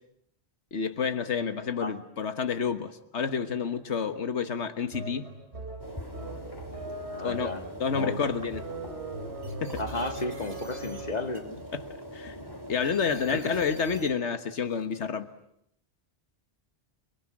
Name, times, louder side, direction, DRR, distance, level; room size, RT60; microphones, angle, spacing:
voice 1, 0.7-5.3 7.2-7.5 7.8-8.7 9.6-9.8 11.7-11.8 12.1-12.4 12.7-15.3, left 6 dB, 90° left, 9 dB, 1.6 m, -29 dB
sound 1, 4.9-11.4, right 2 dB, 75° right, 4.2 m, -40 dB
sound 2, 5.8-14.1, equal, 20° left, 3.0 m, -43 dB
sound 3, 5.9-6.0 6.6-7.1 8.0-8.1 8.5-8.7 9.4-11.0 11.3-11.9 12.8-14.1 14.7-15.1, right 2 dB, 50° right, 3.3 m, -53 dB
voice 2, 7.1-7.6 7.9-8.2 9.8-11.6 13.3-13.5, left 2 dB, 40° left, 6 dB, 2.1 m, -33 dB
29.5 x 22.0 x 8.8 m, 0.75 s
omnidirectional pair, 1.1 m